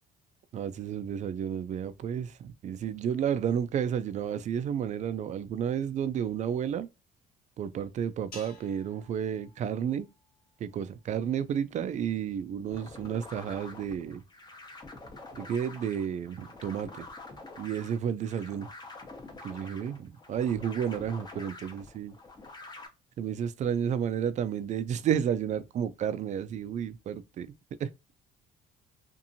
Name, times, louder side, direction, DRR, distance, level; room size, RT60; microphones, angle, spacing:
voice 1, 0.5-6.9 7.6-10.1 10.6-14.2 15.3-17.1 17.6-18.7 19.4-22.1 23.2-27.5 27.8-27.9, right 8 dB, 45° right, 0.4 m, -31 dB
sound 1, 8.3-10.8, left 2 dB, 60° left, 1.2 m, -53 dB
sound 2, 12.7-22.9, left 3 dB, 25° left, 0.8 m, -47 dB
2.8 x 2.6 x 2.5 m
cardioid pair, 110°, 17 cm